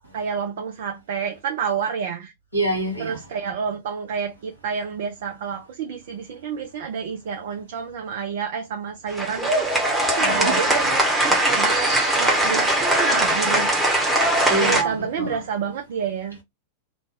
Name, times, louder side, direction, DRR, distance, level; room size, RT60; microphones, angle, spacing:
voice 1, 0.1-2.3 3.0-9.9 10.2-13.8 14.5-16.4, right 6 dB, 55° right, 0.5 m, -29 dB
voice 2, 2.5-3.2 10.2-10.6 14.5-15.4, right 2 dB, 90° right, 1.2 m, -25 dB
sound 1, 9.1-14.8, right 1 dB, 5° right, 1.0 m, -20 dB
2.6 x 2.2 x 3.1 m
figure-of-eight pair, 90°, 0 cm